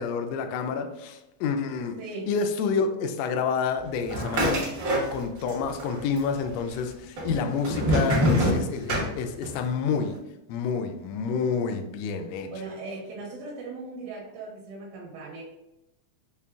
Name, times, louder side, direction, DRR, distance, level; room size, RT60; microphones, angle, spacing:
voice 1, 0.0-2.0 2.3-4.6 4.9-10.2 10.5-12.5, left 5 dB, 85° left, 1.5 m, -29 dB
voice 2, 2.0-2.3 12.5-15.4, right 3 dB, 80° right, 2.3 m, -38 dB
sound 1, 4.1-5.5 5.8-6.5 7.2-9.6, equal, 55° right, 1.3 m, -25 dB
5.3 x 2.2 x 3.5 m
omnidirectional pair, 3.5 m